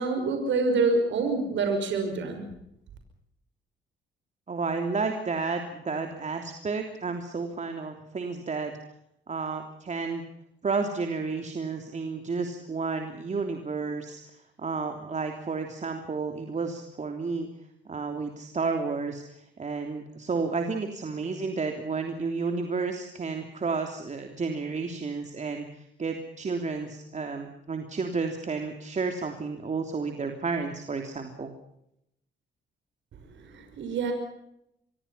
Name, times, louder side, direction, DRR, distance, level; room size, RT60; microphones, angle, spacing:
voice 1, 0.0-2.5 33.4-34.1, right 3 dB, 70° right, 6 dB, 5.8 m, -26 dB
voice 2, 4.5-8.7 9.3-10.2 10.6-14.2 14.6-17.5 17.9-31.5, right 4 dB, 35° right, 5 dB, 3.2 m, -31 dB
25.5 x 22.0 x 5.7 m, 0.77 s
cardioid pair, 90°, 20 cm